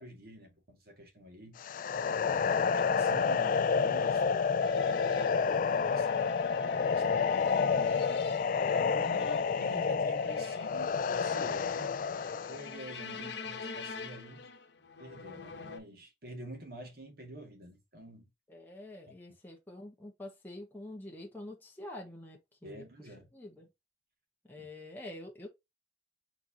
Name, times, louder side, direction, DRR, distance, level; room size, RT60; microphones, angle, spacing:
voice 1, 0.0-1.6 2.1-8.0 8.7-9.3 9.6-11.9 12.5-14.5 15.0-18.3 22.6-23.3 24.6-24.7, equal, 60° right, 2.1 m, -47 dB
sound 1, 1.6-12.7, left 5 dB, 50° left, 0.3 m, -29 dB
voice 2, 2.4-2.7 9.1-9.3 13.1-13.7 18.5-23.7 24.4-25.5, left 1 dB, 10° left, 1.2 m, -47 dB
sound 2, 4.6-15.8, left 4 dB, 75° left, 1.1 m, -45 dB
4.7 x 4.1 x 2.8 m
head